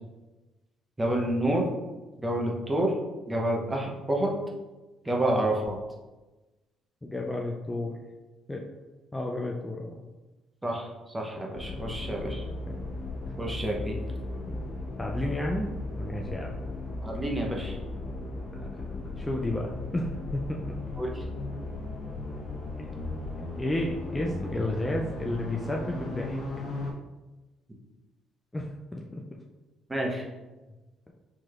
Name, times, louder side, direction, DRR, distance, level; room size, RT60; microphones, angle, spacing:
voice 1, 1.0-1.6 2.2-2.9 3.3-4.4 5.0-5.8 10.6-12.5 13.4-14.0 17.0-17.8 21.0-21.2 29.9-30.3, right 1 dB, 15° right, 0 dB, 0.8 m, -28 dB
voice 2, 7.0-8.0 8.5-8.6 9.1-10.0 11.8-11.9 12.3-12.4 14.5-14.6 15.0-16.5 18.5-20.6 23.6-26.4 28.5-29.2, left 1 dB, 15° left, -1 dB, 0.4 m, -32 dB
sound 1, 11.5-26.9, left 2 dB, 55° left, 1.0 m, -36 dB
4.4 x 3.1 x 2.4 m, 1.1 s
cardioid pair, 85°, 0 cm